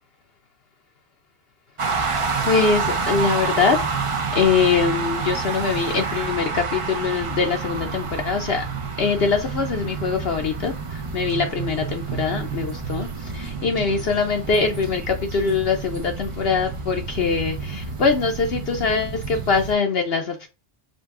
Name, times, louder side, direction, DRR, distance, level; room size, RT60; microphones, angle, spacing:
sound 1, 1.8-19.7, right 5 dB, 40° right, 0.4 m, -28 dB
voice 1, 1.9-4.1 4.3-8.7 9.0-20.5, left 5 dB, 60° left, 0.8 m, -23 dB
5.1 x 2.3 x 3.5 m
omnidirectional pair, 1.2 m